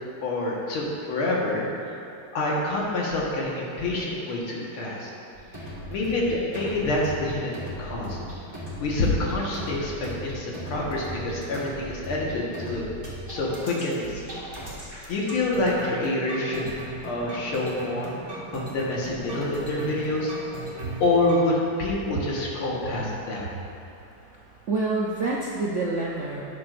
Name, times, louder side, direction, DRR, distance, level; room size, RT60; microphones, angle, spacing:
voice 1, 0.2-1.7 2.3-5.1 5.6-8.2 8.8-12.8 13.3-14.3 15.1-16.7 17.0-20.3 21.0-23.5, left 2 dB, 80° left, -4 dB, 2.3 m, -27 dB
sound 1, 5.4-21.5, equal, 10° right, 1.6 m, -38 dB
voice 2, 24.6-26.4, right 3 dB, 80° right, -4 dB, 0.6 m, -27 dB
11.5 x 9.5 x 2.5 m, 2.9 s
omnidirectional pair, 2.3 m